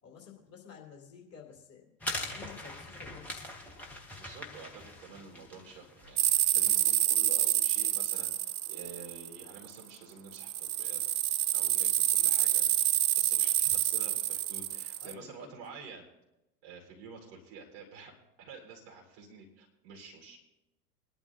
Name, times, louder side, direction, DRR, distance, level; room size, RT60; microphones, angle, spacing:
voice 1, 0.0-3.3 15.0-15.5, left 7 dB, 30° left, -1 dB, 2.8 m, -51 dB
sound 1, 2.0-7.0, left 1 dB, 5° left, 0.3 m, -42 dB
voice 2, 4.2-11.0 11.5-12.7 13.2-16.1 16.6-18.1 18.4-20.4, right 4 dB, 50° right, 1 dB, 4.1 m, -49 dB
sound 2, 6.2-9.7 10.3-15.1, right 13 dB, 65° right, 0.6 m, -28 dB
23.0 x 11.5 x 2.6 m, 0.92 s
figure-of-eight pair, 95°, 47 cm